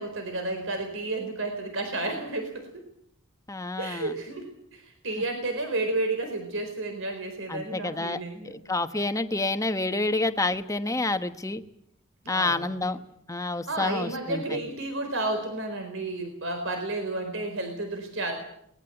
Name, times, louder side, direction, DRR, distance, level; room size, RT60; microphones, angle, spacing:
voice 1, 0.0-2.8 3.8-8.6 12.2-12.9 13.7-18.3, right 2 dB, 65° right, 6 dB, 4.3 m, -32 dB
voice 2, 3.5-4.2 7.5-8.2 8.4-11.6 12.3-13.0 13.3-14.6, left 2 dB, 15° left, 9 dB, 1.1 m, -28 dB
22.5 x 20.0 x 8.1 m, 0.75 s
head